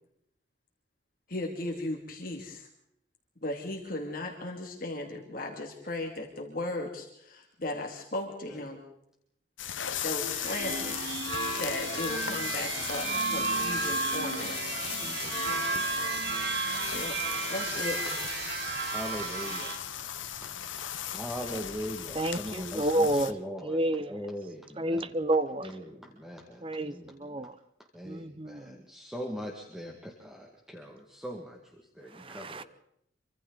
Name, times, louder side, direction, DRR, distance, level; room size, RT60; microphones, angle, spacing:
voice 1, 1.3-2.7 3.4-8.8 10.0-11.0 11.6-14.6 16.9-17.2 17.5-18.2, left 1 dB, 45° left, 2.6 m, -36 dB
sound 1, 9.6-23.3, left 10 dB, 90° left, 1.0 m, -37 dB
sound 2, 10.2-19.8, right 4 dB, 60° right, 3.6 m, -33 dB
voice 2, 15.0-16.6 18.2-18.3 18.9-19.8 21.1-23.8 24.1-25.1 25.6-27.5 27.9-32.6, equal, ahead, 2.0 m, -41 dB
voice 3, 22.1-23.3 23.6-24.2 24.8-25.7 26.6-27.6 28.0-28.8 32.1-32.6, right 1 dB, 30° right, 0.8 m, -30 dB
27.0 x 24.5 x 4.0 m
head